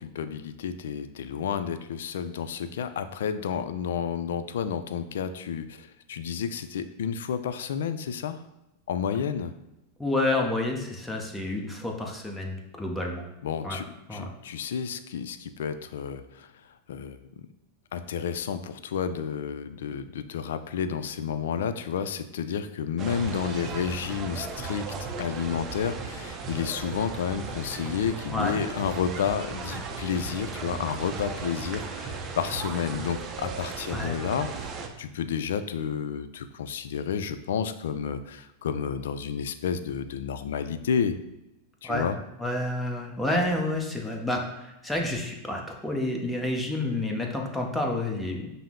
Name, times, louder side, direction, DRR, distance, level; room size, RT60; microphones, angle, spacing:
voice 1, 0.0-8.4 8.9-9.5 13.4-16.5 16.9-17.2 17.9-41.2 41.8-42.2, left 7 dB, 80° left, 11 dB, 0.3 m, -31 dB
voice 2, 10.0-13.2 13.6-13.8 14.1-14.3 28.3-28.6 33.9-34.1 41.8-42.1 42.4-48.5, left 1 dB, 10° left, 1 dB, 0.8 m, -29 dB
sound 1, 23.0-34.9, right 4 dB, 35° right, 0.5 m, -36 dB
5.5 x 2.0 x 3.6 m, 0.89 s
hypercardioid pair, 110°, 0 cm